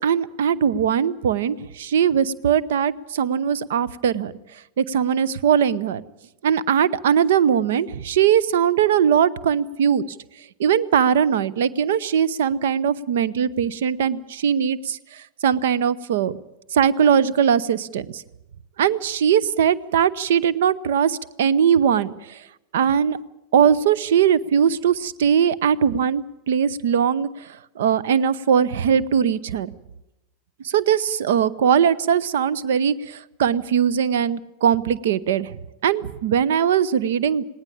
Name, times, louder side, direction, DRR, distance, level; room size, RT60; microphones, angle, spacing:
voice 1, 0.0-4.3 4.8-6.0 6.4-10.0 10.6-16.4 16.7-18.2 18.8-22.4 22.7-23.2 23.5-29.7 30.6-35.5 35.8-37.4, right 8 dB, 55° right, 19 dB, 0.7 m, -20 dB
19.0 x 18.5 x 8.7 m, 0.91 s
figure-of-eight pair, 90°, 0 cm